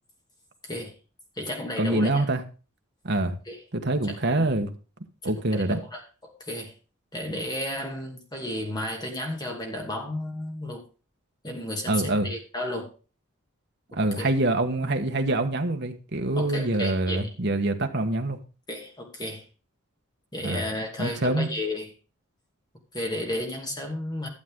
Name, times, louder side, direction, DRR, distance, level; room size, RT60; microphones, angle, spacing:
voice 1, 0.6-0.9 1.4-2.3 3.5-3.6 4.3-4.5 5.2-6.7 7.1-10.8 11.4-12.9 14.2-14.3 16.4-17.2 18.7-19.4 20.3-21.9 22.9-24.3, left 1 dB, 20° left, 2 dB, 2.5 m, -33 dB
voice 2, 1.8-2.4 3.0-3.4 3.7-4.7 5.2-5.8 11.9-12.3 14.0-18.4 20.4-20.6 21.0-21.5, right 2 dB, 50° right, 5 dB, 1.3 m, -25 dB
12.5 x 7.8 x 3.7 m, 0.34 s
head